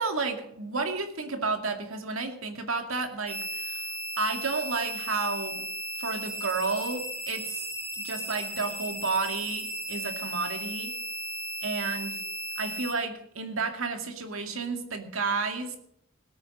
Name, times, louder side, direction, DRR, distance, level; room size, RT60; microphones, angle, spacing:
voice 1, 0.0-3.8 4.2-5.7 6.0-7.6 8.0-10.9 11.6-12.2 12.6-15.8, right 4 dB, 85° right, 6 dB, 2.2 m, -31 dB
sound 1, 3.3-12.9, equal, 10° right, 3.9 m, -35 dB
17.5 x 9.1 x 6.4 m, 0.72 s
head